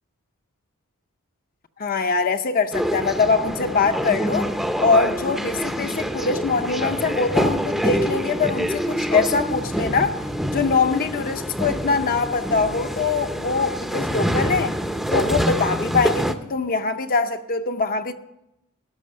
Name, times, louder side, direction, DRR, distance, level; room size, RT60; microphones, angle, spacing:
voice 1, 1.8-4.5 4.8-10.2 10.5-14.7 15.1-18.1, left 4 dB, 40° left, 0.6 m, -23 dB
sound 1, 2.7-16.3, equal, ahead, 0.6 m, -26 dB
13.0 x 6.0 x 9.5 m
head